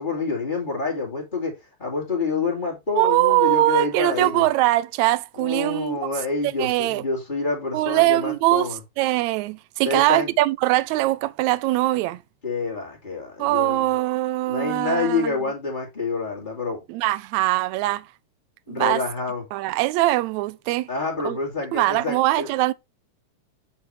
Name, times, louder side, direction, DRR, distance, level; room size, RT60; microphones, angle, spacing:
voice 1, 0.0-1.5 1.8-4.5 5.4-8.8 9.8-10.3 12.4-13.9 14.4-16.8 18.7-19.4 20.9-22.5, left 4 dB, 15° left, 2.5 m, -27 dB
voice 2, 2.9-6.0 6.6-7.0 7.7-8.7 9.0-12.2 13.4-15.3 16.9-18.0 18.7-19.0 19.5-20.9 21.3-21.4 21.7-22.7, right 17 dB, 80° right, 1.8 m, -22 dB
8.0 x 5.8 x 3.2 m
omnidirectional pair, 3.5 m